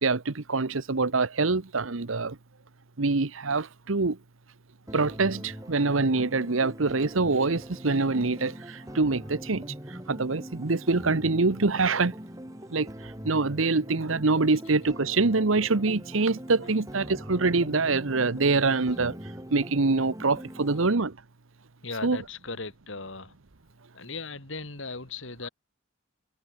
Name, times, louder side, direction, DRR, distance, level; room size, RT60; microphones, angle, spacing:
voice 1, 0.0-2.4 3.0-4.2 4.9-12.1 12.7-19.2 19.5-21.2 22.0-22.2, right 3 dB, 80° right, 1.1 m, -25 dB
sound 1, 4.9-20.9, equal, 15° right, 6.6 m, -42 dB
voice 2, 21.8-23.3 23.9-25.5, left 3 dB, 70° left, 4.0 m, -37 dB
head